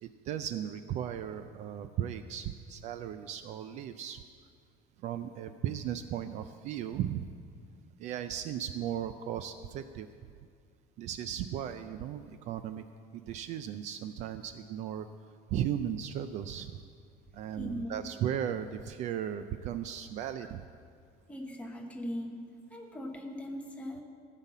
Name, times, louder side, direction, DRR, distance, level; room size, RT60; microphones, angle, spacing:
voice 1, 0.0-4.2 5.0-7.3 8.0-10.1 11.0-12.8 13.1-15.1 15.5-16.8 17.3-20.6, right 10 dB, 45° right, 11 dB, 0.4 m, -36 dB
voice 2, 17.6-18.2 21.3-22.4 22.7-24.0, equal, 10° left, 1 dB, 1.0 m, -39 dB
15.5 x 5.8 x 8.1 m, 2.2 s
cardioid pair, 180°, 17 cm